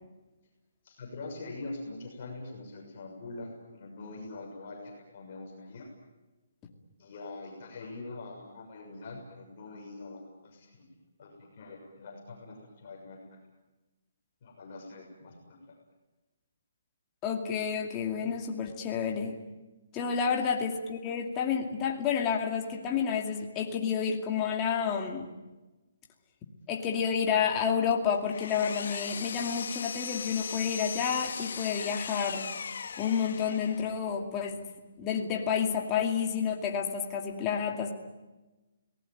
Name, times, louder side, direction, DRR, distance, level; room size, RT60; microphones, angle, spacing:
voice 1, 0.8-5.9 7.0-10.8 11.2-13.2 14.4-15.6, left 2 dB, 35° left, -1 dB, 6.7 m, -44 dB
voice 2, 17.2-19.3 19.9-25.3 26.7-32.5 33.0-34.7 35.0-37.9, left 7 dB, 15° left, 1 dB, 2.4 m, -30 dB
Power tool, 27.9-34.0, left 6 dB, 55° left, 1.8 m, -38 dB
29.5 x 19.5 x 9.2 m, 1.1 s
hypercardioid pair, 180°, 0 cm